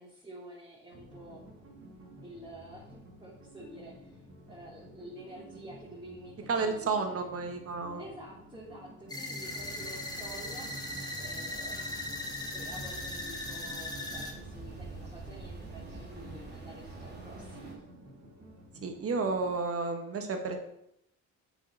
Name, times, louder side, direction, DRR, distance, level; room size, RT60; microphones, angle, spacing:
voice 1, 0.0-1.4 2.2-4.2 4.5-7.4 7.9-10.7 11.2-12.0 12.5-17.8, right 1 dB, 15° right, -6 dB, 3.1 m, -49 dB
sound 1, 0.9-19.6, right 1 dB, 65° right, 3.8 m, -52 dB
voice 2, 6.5-8.0 18.8-20.6, right 4 dB, 50° right, 5 dB, 1.6 m, -31 dB
sound 2, 9.1-14.3, left 1 dB, 15° left, 1.9 m, -38 dB
sound 3, 9.4-17.7, right 3 dB, 35° right, 2.9 m, -47 dB
7.6 x 6.3 x 5.6 m, 0.76 s
cardioid pair, 90°, 30 cm